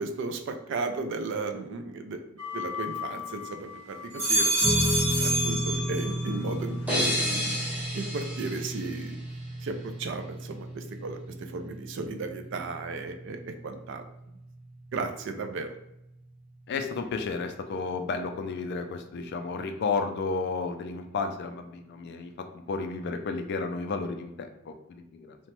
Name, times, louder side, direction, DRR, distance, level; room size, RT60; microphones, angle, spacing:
voice 1, 0.0-2.2 2.5-4.5 5.2-9.2 9.6-11.2 11.5-14.4 14.9-15.7, right 3 dB, 55° right, 6 dB, 0.3 m, -35 dB
sound 1, 2.4-3.5 4.0-6.4 6.8-7.4, right 1 dB, 75° right, 1.5 m, -28 dB
sound 2, 4.6-17.1, equal, 30° right, 1.4 m, -35 dB
sound 3, 6.9-9.6, left 1 dB, 5° right, 0.6 m, -32 dB
voice 2, 16.7-25.4, left 4 dB, 50° left, 6 dB, 0.3 m, -32 dB
2.9 x 2.1 x 3.0 m, 0.86 s
head